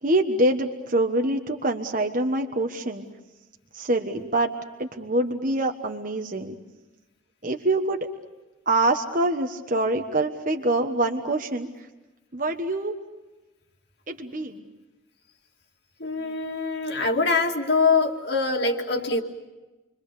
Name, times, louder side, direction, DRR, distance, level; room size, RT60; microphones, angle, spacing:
voice 1, 0.0-3.1 3.7-4.5 4.8-6.6 7.4-8.1 8.7-11.7 12.3-13.0 14.1-14.6, right 2 dB, 40° right, 4 dB, 1.3 m, -25 dB
voice 2, 16.0-19.2, left 4 dB, 55° left, 2 dB, 2.4 m, -23 dB
29.5 x 23.0 x 6.9 m, 1.1 s
head